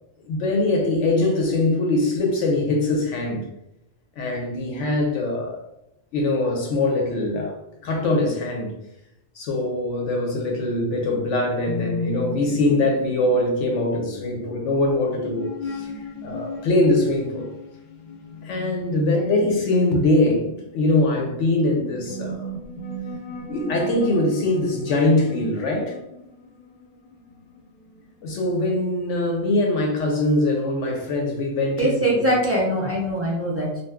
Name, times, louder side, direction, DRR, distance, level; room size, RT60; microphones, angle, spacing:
voice 1, 0.2-3.4 4.2-5.6 6.1-7.6 7.8-8.7 9.4-17.5 18.4-22.5 23.5-26.0 28.2-32.3, left 2 dB, 70° left, 1 dB, 0.9 m, -22 dB
sound 1, 11.7-28.3, left 2 dB, 55° left, 0.5 m, -36 dB
voice 2, 31.8-33.8, right 1 dB, 20° right, -4 dB, 0.4 m, -22 dB
2.6 x 2.2 x 3.4 m, 0.84 s
omnidirectional pair, 1.3 m